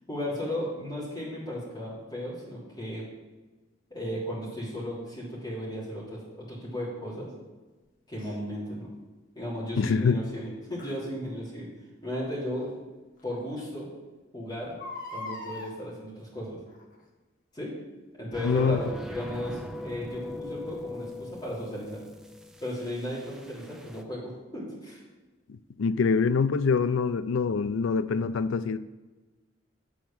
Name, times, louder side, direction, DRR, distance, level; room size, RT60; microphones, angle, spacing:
voice 1, 0.1-3.1 3.9-7.3 8.1-8.9 9.3-11.7 12.0-12.7 13.2-13.9 14.3-14.7 15.1-16.6 17.5-17.7 18.2-22.0 22.6-25.0, equal, 20° left, -7 dB, 3.2 m, -35 dB
Crying sobbing, 8.2-8.3 10.8-11.0 12.6-12.7 13.2-13.3 13.5-13.6 14.6-15.7 16.7-17.0 17.6-17.7, left 2 dB, 45° left, 1.2 m, -40 dB
voice 2, 9.8-10.2 18.4-18.8 25.5-28.8, left 5 dB, 85° left, 14 dB, 0.4 m, -25 dB
sound 1, 18.3-24.0, left 1 dB, 5° right, 0.4 m, -40 dB
7.9 x 4.9 x 7.3 m, 1.2 s
head